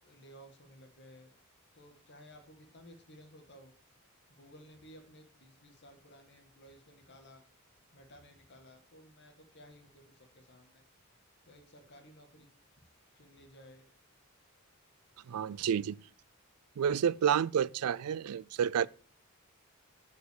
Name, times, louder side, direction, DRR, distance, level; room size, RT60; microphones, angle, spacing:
voice 1, 0.0-1.3 1.7-3.7 4.3-7.4 7.9-10.8 11.4-12.5 13.1-13.9 15.5-15.8, equal, 50° left, 2.0 m, -56 dB
voice 2, 15.3-16.0 16.8-18.9, right 8 dB, 85° right, 0.4 m, -29 dB
7.0 x 6.4 x 6.7 m
head